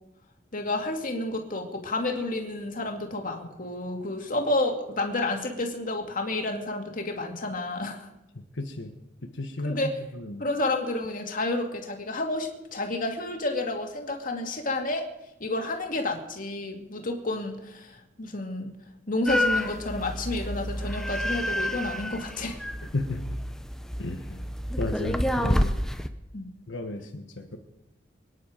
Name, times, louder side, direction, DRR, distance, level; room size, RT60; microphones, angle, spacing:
voice 1, 0.5-8.1 9.6-9.9 10.4-15.1 15.4-18.7 19.1-22.6 26.3-26.5, left 2 dB, 45° left, 3 dB, 2.4 m, -30 dB
voice 2, 8.6-8.9 9.2-9.8 10.1-10.4 22.9-23.2 24.0-24.4 24.8-25.8 26.7-27.6, left 2 dB, 80° left, 4 dB, 1.3 m, -33 dB
sound 1, 19.3-26.1, equal, 5° left, 0.8 m, -29 dB
24.0 x 10.0 x 5.1 m, 0.95 s
head